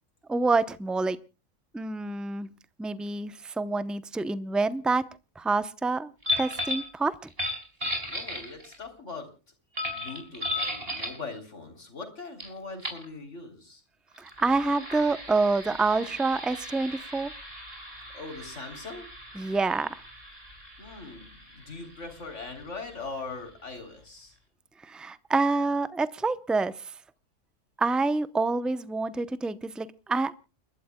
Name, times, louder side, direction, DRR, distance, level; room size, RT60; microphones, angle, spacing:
voice 1, 0.3-1.2 1.7-2.5 2.8-5.0 5.4-6.1 6.4-7.3 14.2-17.3 19.3-20.0 24.8-26.9 27.8-30.3, right 3 dB, ahead, 13 dB, 0.4 m, -27 dB
sound 1, 6.2-6.9 7.3-8.8 9.8-11.2 12.4-12.5 12.8-13.1 14.1-23.4, left 1 dB, 50° right, 5.0 m, -36 dB
voice 2, 8.1-9.3 9.9-13.8 18.1-19.1 20.8-24.4, left 3 dB, 70° left, 5 dB, 3.8 m, -41 dB
30.0 x 12.5 x 2.2 m, 0.32 s
omnidirectional pair, 1.3 m